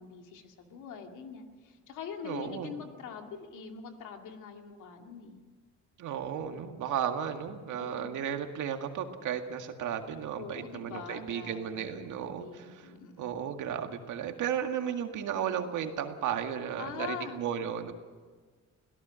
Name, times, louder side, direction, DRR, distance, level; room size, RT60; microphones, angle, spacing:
voice 1, 0.0-5.4 6.4-6.6 7.8-8.1 10.3-13.4 16.8-17.4, left 7 dB, 85° left, 4 dB, 2.4 m, -43 dB
voice 2, 2.2-2.7 6.0-12.9 13.2-17.9, right 8 dB, 80° right, 5 dB, 2.0 m, -34 dB
26.5 x 17.0 x 6.4 m, 1.5 s
cardioid pair, 90°, 30 cm